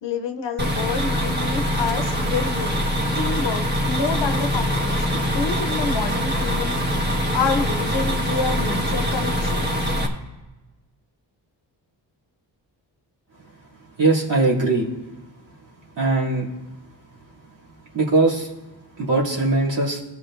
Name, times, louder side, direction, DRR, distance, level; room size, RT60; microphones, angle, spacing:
voice 1, 0.0-2.8 3.1-6.8 7.3-9.6, left 5 dB, 65° left, 5 dB, 0.8 m, -28 dB
bus engine, 0.6-10.1, equal, 25° right, 1.4 m, -23 dB
voice 2, 14.0-14.9 16.0-16.5 17.9-18.5 19.0-20.0, right 3 dB, 75° right, -5 dB, 2.6 m, -20 dB
17.5 x 6.6 x 2.5 m, 1.1 s
wide cardioid pair, 120°, 45 cm